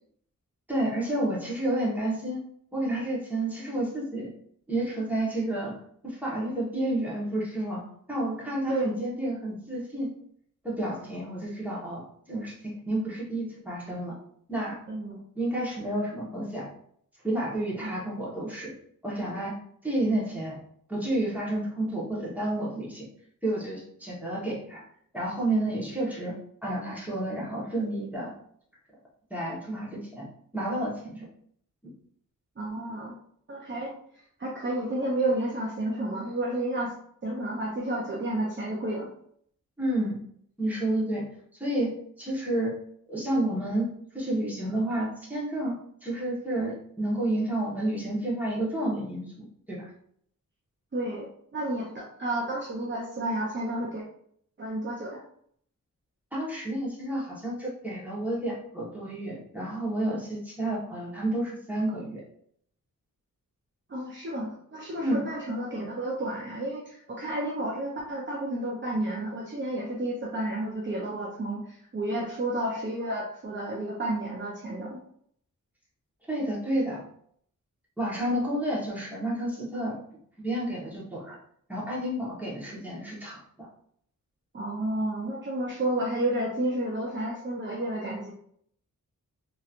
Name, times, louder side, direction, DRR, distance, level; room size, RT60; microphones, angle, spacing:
voice 1, 0.7-2.4 2.7-4.3 4.7-5.7 6.0-10.1 10.6-14.2 14.5-14.8 15.3-16.7 17.2-18.7 19.0-19.5 19.8-20.6 20.9-23.1 23.4-24.8 25.1-28.3 29.3-30.2 30.5-31.3 39.8-40.2 40.6-41.2 41.6-42.7 43.1-43.9 44.1-49.9 56.3-62.2 65.0-65.2 76.3-77.0 78.0-80.0 80.4-81.4 81.7-83.7, right 1 dB, 5° right, -6 dB, 1.2 m, -30 dB
voice 2, 8.7-9.0 14.9-15.2 17.8-17.9 32.6-33.2 33.5-33.9 34.4-36.9 37.2-39.1 50.9-54.0 54.6-55.2 63.9-75.0 84.5-88.3, right 1 dB, 35° right, -3 dB, 0.6 m, -31 dB
3.0 x 2.9 x 2.5 m, 0.65 s
wide cardioid pair, 90°, 33 cm